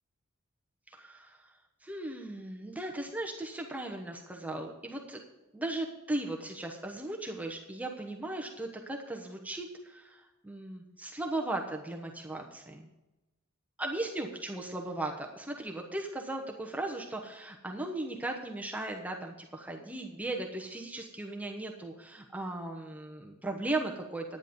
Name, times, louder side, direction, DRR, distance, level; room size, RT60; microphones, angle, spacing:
voice 1, 0.9-1.5 1.8-5.2 5.5-12.9 13.8-24.4, right 2 dB, 5° right, 1 dB, 1.0 m, -37 dB
11.0 x 9.5 x 5.3 m, 1.0 s
head